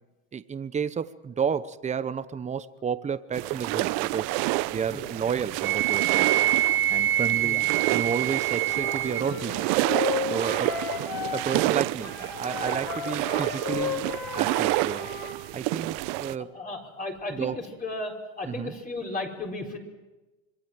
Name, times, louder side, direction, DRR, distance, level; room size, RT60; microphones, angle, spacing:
voice 1, 0.3-4.3 4.7-6.4 6.9-9.7 10.3-14.0 14.4-15.1 15.5-16.5 17.3-17.6 18.5-18.7, right 7 dB, 20° right, 13 dB, 0.9 m, -31 dB
sound 1, 3.3-16.4, right 20 dB, 75° right, 0.9 m, -29 dB
Wind instrument woodwind instrument, 5.6-9.3, right 13 dB, 35° right, 1.8 m, -25 dB
Wind instrument woodwind instrument 2, 8.6-11.7 12.0-15.4, left 7 dB, 60° left, 7.5 m, -34 dB
voice 2, 16.5-17.5 17.8-19.8, left 2 dB, 25° left, -1 dB, 4.5 m, -35 dB
26.5 x 21.5 x 7.7 m, 1.2 s
supercardioid pair, 115°, 34 cm